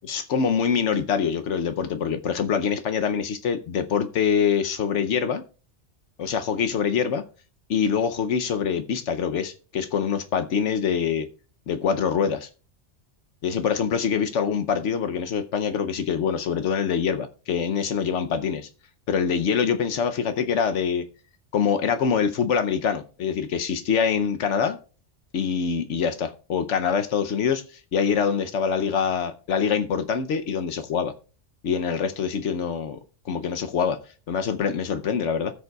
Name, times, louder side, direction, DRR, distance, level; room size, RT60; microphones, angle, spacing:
voice 1, 0.0-5.4 6.2-7.2 7.7-11.3 11.7-12.5 13.4-18.7 19.1-21.0 21.5-24.8 25.3-31.1 31.6-33.0 33.2-34.0 34.3-35.5, left 7 dB, 75° left, 8 dB, 1.0 m, -24 dB
19.5 x 6.6 x 2.3 m, 0.38 s
omnidirectional pair, 1.2 m